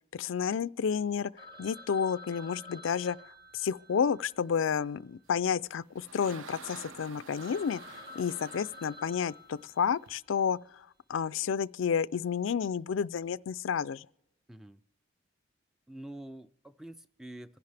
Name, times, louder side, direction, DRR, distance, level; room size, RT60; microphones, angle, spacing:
voice 1, 0.1-1.3 1.6-3.2 3.5-14.1, left 7 dB, 80° left, 0.4 m, -31 dB
Telephone, 1.4-5.7 6.0-6.1 6.6-6.7 7.1-7.2 7.4-10.3, left 2 dB, 25° right, 1.2 m, -51 dB
sound 1, 5.5-10.1, right 5 dB, 85° right, 0.8 m, -50 dB
voice 2, 14.5-14.8 15.9-17.6, right 1 dB, 5° right, 0.4 m, -46 dB
26.0 x 10.5 x 3.4 m
head